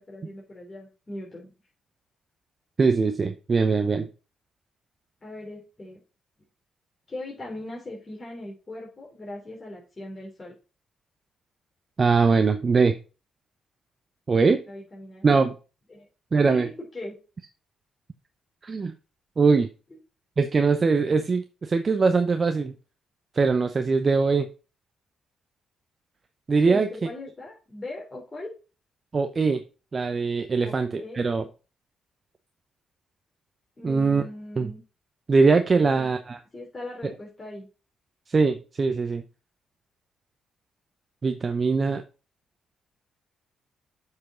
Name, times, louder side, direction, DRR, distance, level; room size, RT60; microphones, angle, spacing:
voice 1, 0.0-1.5 5.2-6.0 7.1-10.5 14.7-15.2 15.9-16.1 16.4-17.1 26.6-28.5 30.6-31.2 33.8-34.8 35.7-36.1 36.5-37.7, left 2 dB, 35° left, -3 dB, 3.2 m, -39 dB
voice 2, 2.8-4.1 12.0-12.9 14.3-14.6 15.2-15.6 16.3-16.7 18.6-18.9 19.4-19.7 20.4-22.7 23.3-24.5 26.5-26.9 29.1-29.6 29.9-31.4 33.8-34.2 34.6-34.7 35.3-36.4 38.3-39.2 41.2-42.0, right 4 dB, 40° right, 7 dB, 0.7 m, -22 dB
7.6 x 4.8 x 3.8 m, 0.33 s
hypercardioid pair, 45°, 0 cm